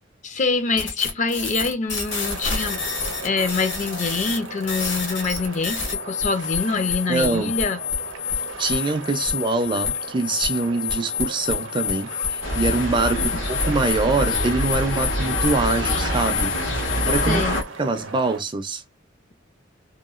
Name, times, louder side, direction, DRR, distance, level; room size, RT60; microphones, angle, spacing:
voice 1, 0.2-2.8 3.2-7.8 13.1-13.4 17.2-17.6, left 4 dB, 40° left, 0.5 m, -25 dB
sound 1, 0.8-17.6, left 6 dB, 65° left, 1.1 m, -28 dB
sound 2, 2.1-18.4, right 3 dB, 75° right, 0.6 m, -38 dB
voice 2, 7.1-7.5 8.6-16.5 17.1-17.4 17.8-18.8, right 3 dB, 25° right, 0.4 m, -24 dB
sound 3, 12.4-17.6, equal, 90° left, 1.4 m, -26 dB
2.9 x 2.2 x 2.3 m
head